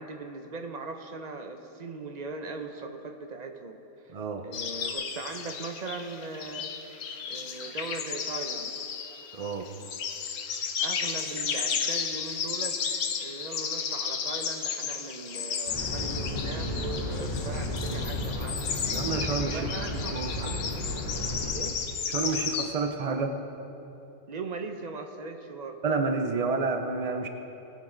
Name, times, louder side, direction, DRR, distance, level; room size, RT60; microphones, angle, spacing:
voice 1, 0.0-4.2 4.4-6.7 7.3-8.8 10.8-12.8 13.2-18.6 19.5-20.4 21.5-21.8 24.3-25.8, right 3 dB, 45° right, 5 dB, 0.6 m, -39 dB
voice 2, 4.1-4.4 9.3-9.7 18.9-20.6 22.1-23.4 25.8-27.3, right 4 dB, 90° right, 6 dB, 0.3 m, -30 dB
sound 1, 4.5-22.7, left 6 dB, 75° left, 1.3 m, -33 dB
sound 2, 15.7-21.5, left 1 dB, 30° left, 3.2 m, -33 dB
19.5 x 8.6 x 3.9 m, 3.0 s
omnidirectional pair, 1.6 m